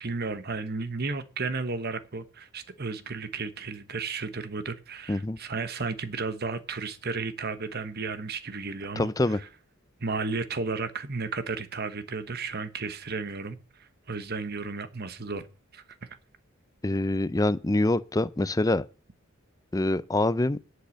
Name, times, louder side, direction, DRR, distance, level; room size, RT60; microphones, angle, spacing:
voice 1, 0.0-9.5 10.0-15.4 15.7-16.1, right 4 dB, 45° right, 1.1 m, -33 dB
voice 2, 9.0-9.4 16.8-18.9 19.7-20.6, left 2 dB, 15° left, 0.5 m, -25 dB
10.5 x 8.0 x 6.4 m
head